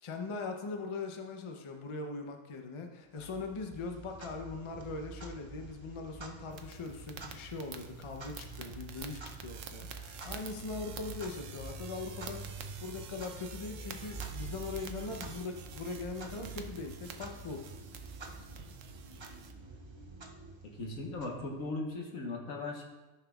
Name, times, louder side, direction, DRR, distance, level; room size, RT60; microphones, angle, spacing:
voice 1, 0.0-17.6, left 3 dB, 35° left, 4 dB, 0.5 m, -41 dB
Clock, 3.2-21.9, right 3 dB, 40° right, 0.4 m, -47 dB
sound 1, 6.5-19.5, right 7 dB, 75° right, 1.0 m, -49 dB
voice 2, 20.8-22.8, left 2 dB, 80° left, 0 dB, 1.5 m, -38 dB
12.0 x 5.7 x 2.3 m, 1.1 s
omnidirectional pair, 1.4 m